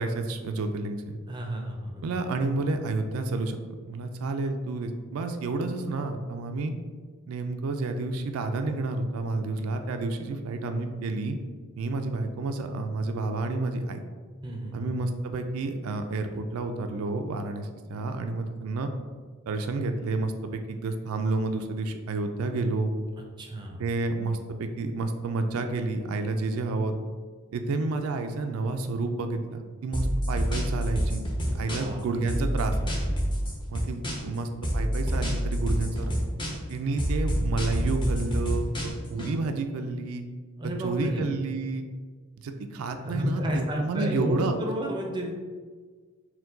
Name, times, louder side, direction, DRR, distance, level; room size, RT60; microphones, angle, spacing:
voice 1, 0.0-1.2 2.0-6.7 7.3-11.4 11.8-14.0 14.7-18.9 19.5-22.9 23.8-27.0 27.5-31.2 31.5-32.8 33.7-34.5 34.7-36.1 36.7-40.2 40.8-41.8 42.4-44.6, right 3 dB, 85° right, 6 dB, 0.3 m, -30 dB
voice 2, 1.3-2.0 14.4-14.9 23.4-23.8 31.5-32.0 40.6-41.2 43.0-45.4, equal, 20° right, 1 dB, 0.4 m, -32 dB
sound 1, 29.9-32.0 32.3-34.4 34.6-36.7 37.0-39.3, equal, 20° left, 0.7 m, -27 dB
4.4 x 2.2 x 3.8 m, 1.5 s
head